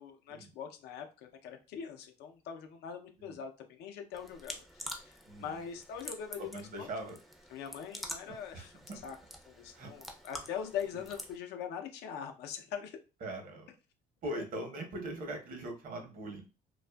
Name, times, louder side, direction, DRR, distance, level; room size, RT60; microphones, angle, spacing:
voice 1, 0.0-6.9 7.5-8.7 9.0-9.2 9.5-13.0, left 7 dB, 80° left, 5 dB, 0.5 m, -42 dB
sound 1, 4.1-11.4, equal, ahead, 0.4 m, -47 dB
voice 2, 5.2-5.6 6.4-7.2 8.5-9.0 9.7-9.9 13.2-13.7 14.2-16.4, right 1 dB, 55° right, 4 dB, 0.8 m, -41 dB
2.5 x 2.3 x 2.2 m, 0.32 s
cardioid pair, 110°, 17 cm